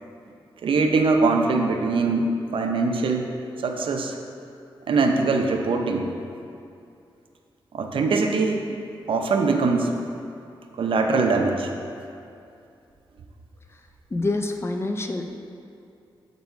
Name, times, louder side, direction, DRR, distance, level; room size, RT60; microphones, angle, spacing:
voice 1, 0.6-3.3 3.6-4.1 4.9-6.1 7.7-8.7 9.1-10.0 10.8-11.7, right 3 dB, 75° right, 3 dB, 0.6 m, -22 dB
voice 2, 14.1-15.3, left 2 dB, 30° left, 4 dB, 0.5 m, -26 dB
8.0 x 4.1 x 4.7 m, 2.5 s
wide cardioid pair, 100°, 9 cm